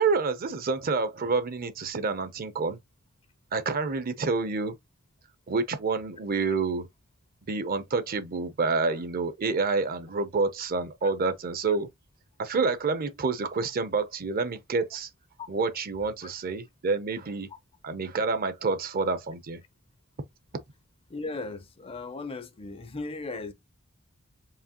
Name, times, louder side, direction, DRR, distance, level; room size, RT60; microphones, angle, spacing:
voice 1, 0.0-2.8 3.5-4.7 5.5-6.9 7.5-11.9 12.4-15.1 15.5-17.5 17.8-19.6, right 4 dB, 40° right, 0.6 m, -28 dB
voice 2, 21.1-23.5, left 3 dB, 25° left, 0.5 m, -37 dB
4.8 x 2.8 x 2.8 m
head